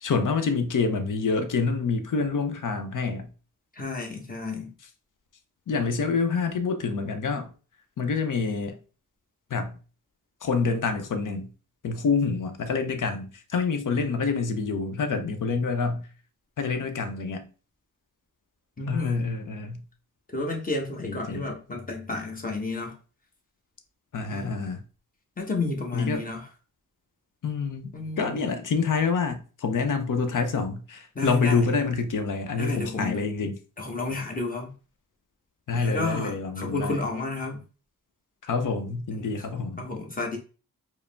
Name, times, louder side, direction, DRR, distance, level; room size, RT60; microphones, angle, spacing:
voice 1, 0.0-3.3 5.7-7.5 8.0-8.8 9.5-9.8 10.4-11.5 11.8-16.1 16.6-17.5 18.9-19.8 21.0-21.5 24.1-24.8 25.9-26.2 27.4-27.9 28.2-33.6 35.7-37.0 38.4-39.9, left 4 dB, 65° left, 0.7 m, -27 dB
voice 2, 3.8-4.7 18.8-19.3 20.3-22.9 24.3-24.6 25.4-26.4 27.9-28.4 31.1-31.7 32.6-33.2 33.8-34.7 35.7-37.6 39.2-39.4 39.8-40.4, left 2 dB, 25° left, 1.1 m, -31 dB
4.7 x 2.0 x 3.4 m
cardioid pair, 80°, 33 cm